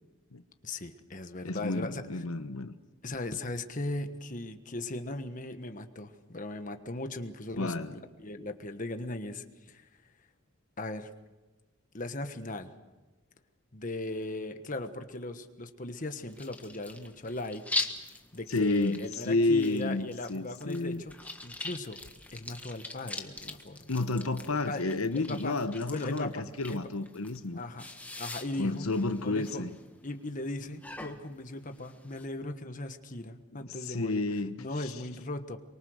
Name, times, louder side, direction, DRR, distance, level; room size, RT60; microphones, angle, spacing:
voice 1, 0.6-2.0 3.0-9.9 10.8-11.1 11.9-12.7 13.7-17.6 18.3-22.0 22.3-23.9 24.5-24.9 25.1-25.6 25.9-26.9 27.5-27.9 28.2-28.9 29.2-29.6 30.0-35.6, left 2 dB, 40° left, 1.4 m, -38 dB
voice 2, 1.4-2.7 7.6-7.9 18.5-19.0 19.3-21.0 23.9-27.6 28.6-29.7 33.7-34.9, left 2 dB, 90° left, 1.1 m, -30 dB
sound 1, 16.3-32.2, left 2 dB, 5° left, 1.4 m, -42 dB
24.0 x 24.0 x 6.5 m
head